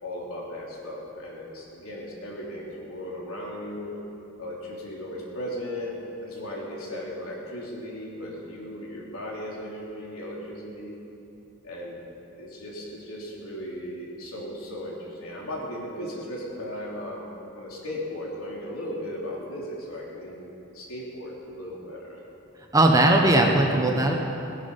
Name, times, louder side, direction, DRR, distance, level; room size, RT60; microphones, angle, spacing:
voice 1, 0.0-3.9 4.4-10.9 11.6-12.0 12.4-17.2 17.5-22.2, left 1 dB, 90° left, -4 dB, 3.4 m, -36 dB
voice 2, 22.7-24.1, right 1 dB, 15° right, 1 dB, 1.2 m, -19 dB
18.5 x 10.5 x 5.6 m, 2.9 s
head